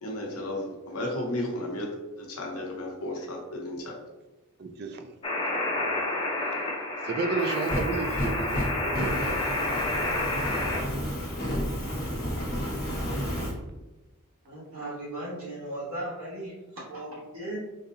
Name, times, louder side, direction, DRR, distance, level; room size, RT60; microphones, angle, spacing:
voice 1, 0.0-4.0, left 1 dB, 90° left, -1 dB, 0.9 m, -34 dB
voice 2, 4.6-5.1 5.7-6.0 7.0-9.6, right 4 dB, 45° right, 6 dB, 0.4 m, -33 dB
sound 1, 5.2-10.8, left 2 dB, 25° left, 0.6 m, -29 dB
Fire, 7.4-13.5, equal, 40° left, 1.2 m, -31 dB
voice 3, 14.4-17.6, right 1 dB, 65° right, -7 dB, 1.4 m, -37 dB
4.0 x 2.6 x 2.6 m, 1.1 s
head